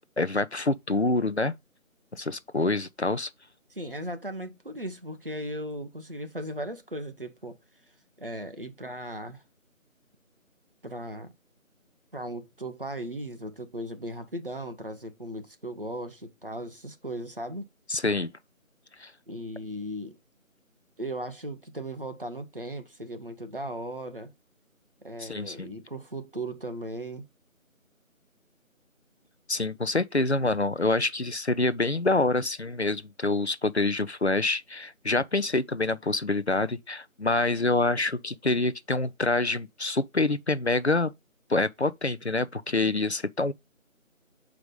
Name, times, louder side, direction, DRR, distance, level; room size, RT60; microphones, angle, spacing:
voice 1, 0.2-1.6 2.1-3.3 17.9-18.3 19.0-19.1 25.2-25.8 29.5-41.1 41.5-43.5, left 2 dB, 55° left, 0.5 m, -26 dB
voice 2, 3.7-7.6 8.2-9.4 10.8-11.3 12.1-17.6 19.3-20.2 21.0-24.3 25.0-27.2, right 1 dB, 40° right, 0.9 m, -37 dB
6.7 x 4.8 x 3.7 m
figure-of-eight pair, 175°, 41 cm